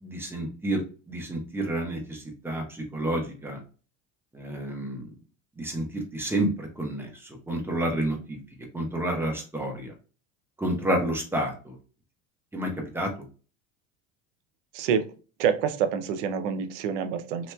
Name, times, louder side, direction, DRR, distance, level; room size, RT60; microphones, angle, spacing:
voice 1, 0.0-0.8 1.1-3.6 4.3-5.1 5.6-8.4 8.7-9.9 10.6-11.7 12.5-13.1, right 1 dB, 5° right, 1 dB, 0.9 m, -30 dB
voice 2, 14.7-15.0 15.4-17.5, right 7 dB, 85° right, 9 dB, 0.6 m, -27 dB
3.0 x 2.9 x 2.2 m, 0.36 s
supercardioid pair, 110°, 35 cm